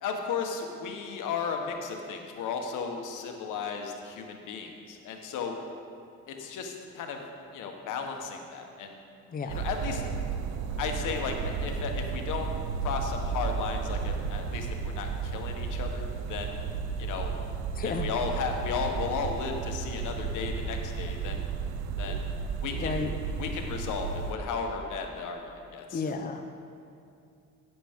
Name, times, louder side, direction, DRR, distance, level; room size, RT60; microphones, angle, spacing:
voice 1, 0.0-5.5 6.3-7.2 7.5-9.0 9.4-10.0 10.8-12.5 12.8-16.6 17.0-17.3 17.8-21.4 22.0-22.3 22.6-23.1 23.4-25.4 25.7-26.0, left 5 dB, 85° left, 3 dB, 1.2 m, -34 dB
voice 2, 9.3-9.6 17.8-18.1 22.1-22.2 22.7-23.1 25.9-26.4, left 5 dB, 30° left, 6 dB, 0.7 m, -33 dB
sound 1, 9.5-24.3, right 5 dB, 90° right, 0.6 m, -33 dB
11.0 x 9.0 x 3.6 m, 2.5 s
cardioid pair, 90°, 30 cm